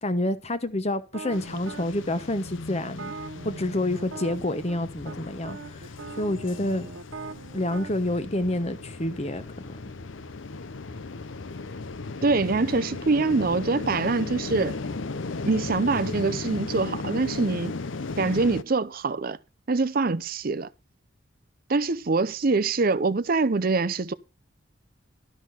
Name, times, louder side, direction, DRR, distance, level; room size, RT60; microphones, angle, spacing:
voice 1, 0.0-3.1 3.4-5.8 6.2-6.9 7.5-9.4, left 1 dB, 35° left, 1.1 m, -28 dB
sound 1, 1.1-1.9 2.8-4.8 5.1-5.2 5.4-7.9, right 4 dB, 80° right, 0.8 m, -40 dB
sound 2, 1.3-18.6, left 3 dB, 75° left, 0.7 m, -36 dB
voice 2, 12.2-14.8 15.4-17.7 18.2-19.4 19.7-20.7 21.7-24.1, right 3 dB, 50° right, 0.6 m, -24 dB
12.5 x 6.2 x 5.7 m
head